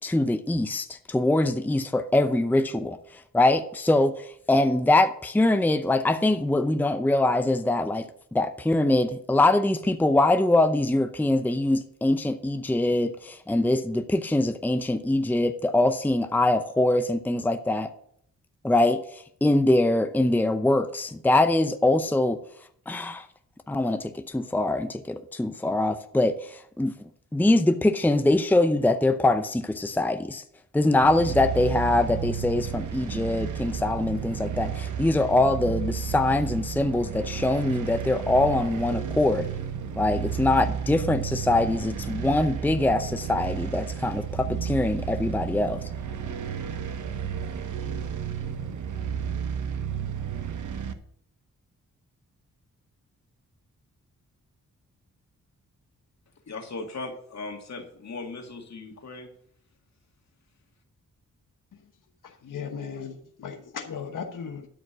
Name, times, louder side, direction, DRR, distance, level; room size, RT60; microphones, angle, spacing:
voice 1, 0.0-8.1 8.3-17.9 18.6-22.4 22.9-23.3 23.7-26.9 27.3-30.4 30.7-39.5 40.0-45.8, left 2 dB, 5° left, 9 dB, 0.7 m, -23 dB
sound 1, 31.0-50.9, right 7 dB, 70° right, 1.0 m, -32 dB
voice 2, 56.5-59.3, left 3 dB, 55° left, 3 dB, 2.4 m, -38 dB
voice 3, 62.4-64.7, left 6 dB, 75° left, 4 dB, 1.2 m, -36 dB
12.0 x 5.1 x 6.1 m, 0.64 s
cardioid pair, 75°, 32 cm